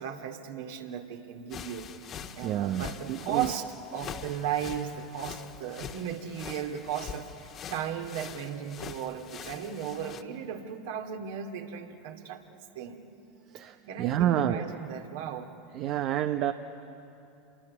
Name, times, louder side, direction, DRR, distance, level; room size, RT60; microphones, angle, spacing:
voice 1, 0.0-1.9 2.4-3.6 3.9-13.0 13.9-15.5, right 8 dB, 65° right, 4 dB, 2.2 m, -36 dB
sound 1, 1.5-10.2, left 7 dB, 40° left, 1.5 m, -43 dB
voice 2, 2.4-3.5 13.5-14.6 15.7-16.5, right 11 dB, 50° right, 8 dB, 0.9 m, -29 dB
27.5 x 22.5 x 8.5 m, 2.8 s
hypercardioid pair, 85°, 0 cm